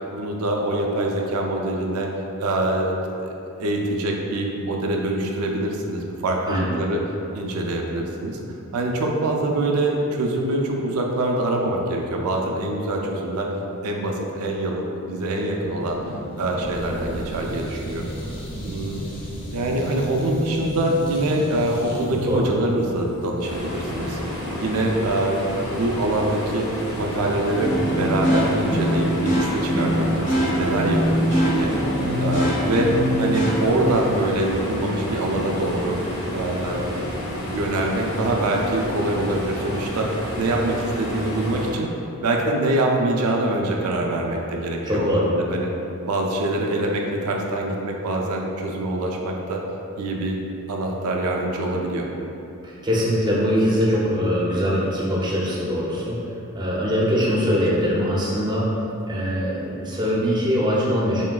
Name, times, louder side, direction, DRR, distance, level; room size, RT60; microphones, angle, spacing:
voice 1, 0.1-2.1 2.4-2.9 3.2-3.3 3.6-7.0 7.3-8.4 8.7-13.5 13.8-16.0 16.4-18.1 18.6-19.0 19.5-26.7 27.0-31.7 32.2-32.9 33.2-36.0 36.3-37.0 37.4-40.1 40.4-41.9 42.2-45.7 46.1-49.6 50.0-50.4 50.7-52.1, right 1 dB, 80° right, 0 dB, 0.4 m, -24 dB
sound 1, 15.6-23.6, equal, 25° left, 0.6 m, -35 dB
sound 2, 23.4-41.7, left 1 dB, 75° left, 1.1 m, -30 dB
sound 3, 27.5-33.5, equal, 55° left, 1.5 m, -23 dB
voice 2, 44.8-45.3 52.6-56.2 56.5-58.7 59.1-61.2, equal, 20° right, -6 dB, 0.6 m, -22 dB
5.0 x 3.1 x 2.3 m, 2.8 s
head